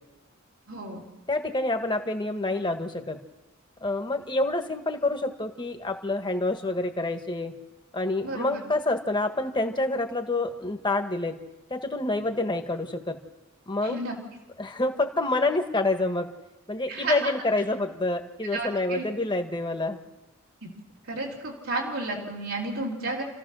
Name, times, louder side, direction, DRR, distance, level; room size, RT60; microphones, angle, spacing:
voice 1, 0.7-1.0 8.2-8.6 13.8-14.2 16.9-17.3 18.5-19.0 20.6-20.7 21.1-23.2, right 2 dB, 90° right, -4 dB, 3.6 m, -32 dB
voice 2, 1.3-3.2 3.8-7.5 7.9-11.4 11.7-13.2 13.7-14.0 14.6-16.3 16.7-20.0, left 2 dB, 25° left, 5 dB, 1.6 m, -27 dB
29.5 x 15.0 x 6.4 m, 1.1 s
head